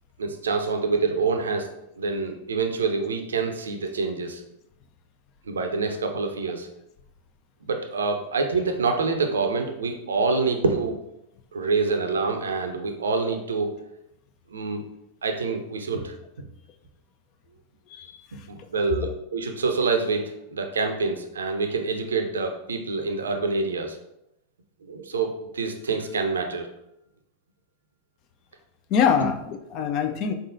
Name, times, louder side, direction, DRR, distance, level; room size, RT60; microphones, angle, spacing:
voice 1, 0.2-1.7 2.0-4.4 5.5-6.7 7.7-11.0 11.5-13.7 14.5-14.8 15.2-16.2 18.3-24.0 24.8-26.7, right 4 dB, 70° right, 5 dB, 0.5 m, -26 dB
voice 2, 17.9-18.5 19.0-19.1 28.9-30.3, left 7 dB, 40° left, 6 dB, 0.4 m, -25 dB
3.9 x 3.6 x 2.6 m, 0.84 s
figure-of-eight pair, 90°, 0 cm